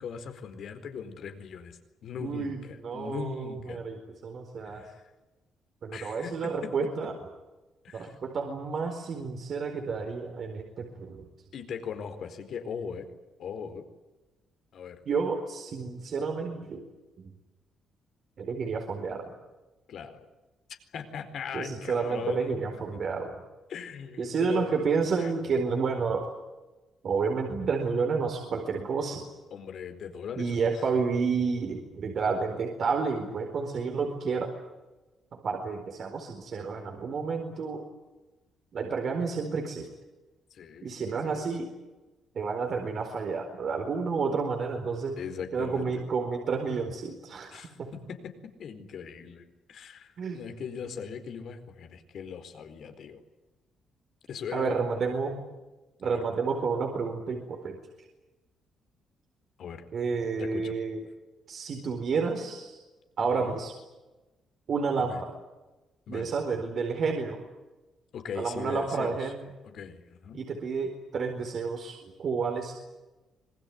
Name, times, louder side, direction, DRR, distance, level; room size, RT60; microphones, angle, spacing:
voice 1, 0.0-3.8 4.6-5.1 5.9-6.7 7.8-8.2 11.5-13.1 13.4-13.8 14.7-15.0 19.9-20.2 20.9-22.6 22.9-23.0 23.7-24.8 25.2-25.3 29.5-30.9 40.5-41.5 45.2-45.9 47.5-48.3 48.6-53.2 54.3-55.1 56.0-56.2 59.6-59.8 60.4-60.7 63.2-63.6 65.0-65.2 66.1-66.3 68.1-69.3 69.6-70.4, left 6 dB, 65° left, 8 dB, 4.4 m, -39 dB
voice 2, 2.2-3.9 4.2-4.8 5.8-7.1 7.9-11.3 15.1-16.8 17.2-17.3 18.4-19.3 21.5-23.3 24.2-26.3 27.0-29.3 30.4-34.5 35.4-37.8 38.7-39.9 40.8-41.7 42.3-45.2 45.5-47.9 50.2-50.4 54.5-55.4 56.0-57.8 59.9-61.0 61.5-62.8 63.2-63.7 64.7-65.4 66.1-67.4 68.4-69.4 70.3-72.8, right 5 dB, 55° right, 3 dB, 4.5 m, -30 dB
26.0 x 20.0 x 9.6 m, 1.1 s
cardioid pair, 90°, 0 cm